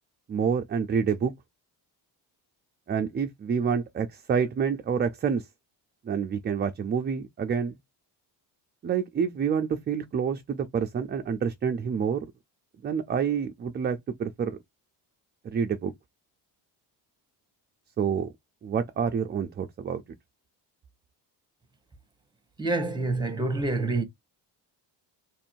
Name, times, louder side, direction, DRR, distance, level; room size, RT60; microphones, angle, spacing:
voice 1, 0.3-1.3 2.9-5.5 6.0-7.8 8.8-12.3 12.8-14.6 15.4-15.9 18.0-18.3 18.6-20.0, right 6 dB, 25° right, 0.4 m, -28 dB
voice 2, 22.6-24.0, right 2 dB, 10° right, 0.9 m, -27 dB
3.1 x 2.6 x 4.4 m
cardioid pair, 130°, 43 cm